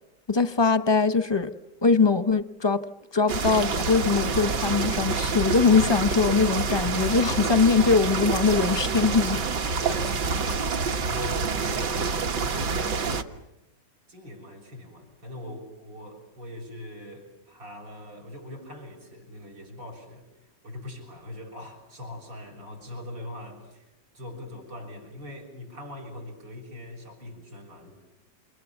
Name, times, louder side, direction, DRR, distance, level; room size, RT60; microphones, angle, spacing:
voice 1, 0.3-1.5 1.8-2.9 3.1-9.5 9.8-9.9, left 4 dB, 25° left, 0.6 m, -22 dB
sound 1, 3.3-13.2, right 4 dB, 65° right, 2.1 m, -27 dB
voice 2, 9.6-10.1 10.9-13.3 14.1-20.3 20.6-23.8 24.1-28.0, left 1 dB, 85° right, 7.6 m, -41 dB
29.0 x 28.5 x 7.2 m
omnidirectional pair, 2.0 m